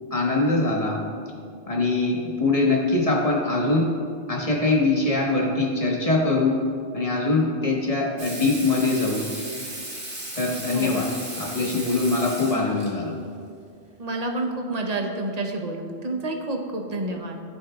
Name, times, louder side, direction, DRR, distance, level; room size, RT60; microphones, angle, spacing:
voice 1, 0.1-1.0 1.7-3.9 4.3-6.6 6.9-9.2 10.3-11.1 11.4-13.2, left 3 dB, 30° left, -2 dB, 1.4 m, -23 dB
Water tap faucet / Sink (filling or washing), 8.2-12.9 14.4-14.5, right 1 dB, 85° right, 2.2 m, -36 dB
voice 2, 14.0-17.4, right 2 dB, 40° right, 2 dB, 0.9 m, -29 dB
15.5 x 6.4 x 2.4 m, 2.3 s
omnidirectional pair, 1.1 m